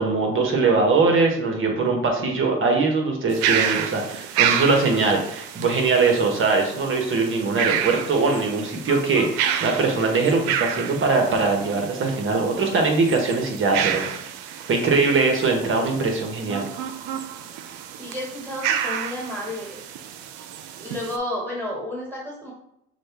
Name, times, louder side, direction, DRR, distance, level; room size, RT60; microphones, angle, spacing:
voice 1, 0.0-14.1 14.7-16.6, right 4 dB, 45° right, 2 dB, 1.1 m, -21 dB
sound 1, 3.3-21.2, right 9 dB, 90° right, 0.5 m, -29 dB
voice 2, 18.0-19.8 20.8-22.5, left 1 dB, 10° right, -5 dB, 1.7 m, -31 dB
6.2 x 2.2 x 3.3 m, 0.77 s
supercardioid pair, 85°, 29 cm